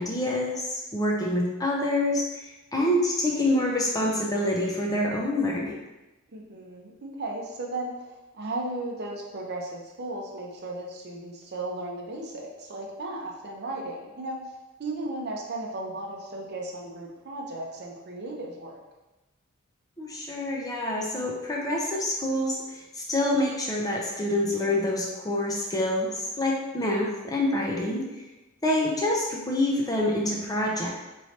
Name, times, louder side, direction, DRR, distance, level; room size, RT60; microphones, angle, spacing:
voice 1, 0.0-5.8 20.0-26.1 26.4-28.2 28.6-30.9, left 1 dB, 15° left, -2 dB, 0.5 m, -26 dB
voice 2, 6.3-14.4 14.8-18.8, right 2 dB, 50° right, -1 dB, 0.6 m, -35 dB
4.5 x 3.1 x 2.8 m, 1.1 s
head